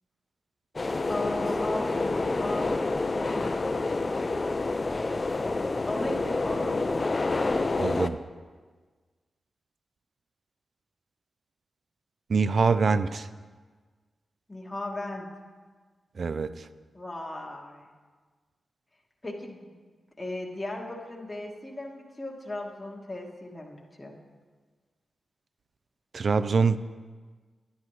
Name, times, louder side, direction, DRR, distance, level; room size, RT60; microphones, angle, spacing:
sound 1, 0.8-8.1, left 3 dB, 40° left, 0.4 m, -28 dB
voice 1, 1.1-3.4 5.9-6.8 12.8-13.0 14.5-15.3 16.9-17.9 19.2-19.8 20.2-24.1, left 1 dB, 15° left, -2 dB, 1.5 m, -37 dB
voice 2, 7.8-8.2 12.3-13.3 16.2-16.5 26.1-26.8, right 4 dB, 60° right, 14 dB, 0.3 m, -24 dB
11.0 x 10.0 x 3.1 m, 1.4 s
cardioid pair, 65°, 0 cm